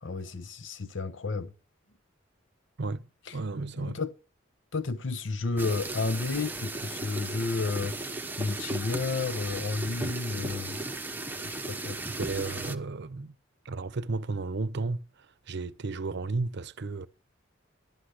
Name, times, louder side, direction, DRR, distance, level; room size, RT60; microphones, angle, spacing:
voice 1, 0.0-1.5 3.3-3.4 3.8-4.1 4.7-10.8 11.4-12.0, left 3 dB, 65° left, 0.9 m, -32 dB
voice 2, 2.8-4.0 12.1-13.3 13.6-17.1, right 3 dB, 60° right, 0.7 m, -33 dB
sound 1, 5.6-12.7, right 2 dB, 10° right, 1.1 m, -36 dB
12.5 x 11.5 x 6.3 m
head